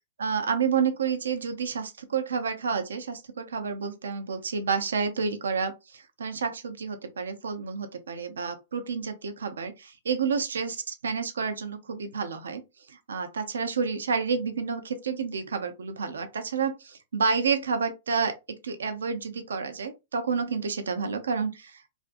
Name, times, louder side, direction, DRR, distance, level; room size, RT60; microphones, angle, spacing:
voice 1, 0.2-12.6 12.9-21.9, right 5 dB, 80° right, 0.4 m, -30 dB
2.5 x 2.4 x 2.4 m
hypercardioid pair, 115°, 0 cm